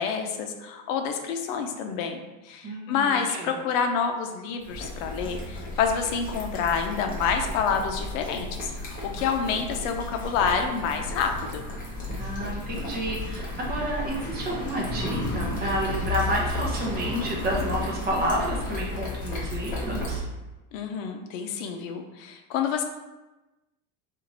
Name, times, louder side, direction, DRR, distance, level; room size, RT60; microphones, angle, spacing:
voice 1, 0.0-2.2 2.4-11.6 20.7-22.8, left 6 dB, 70° left, 5 dB, 0.7 m, -28 dB
voice 2, 2.6-3.5 12.1-20.2, right 1 dB, 25° right, -3 dB, 0.7 m, -30 dB
sound 1, 4.6-20.2, left 1 dB, 20° left, 0.8 m, -33 dB
4.5 x 2.5 x 4.0 m, 1.1 s
supercardioid pair, 165°, 42 cm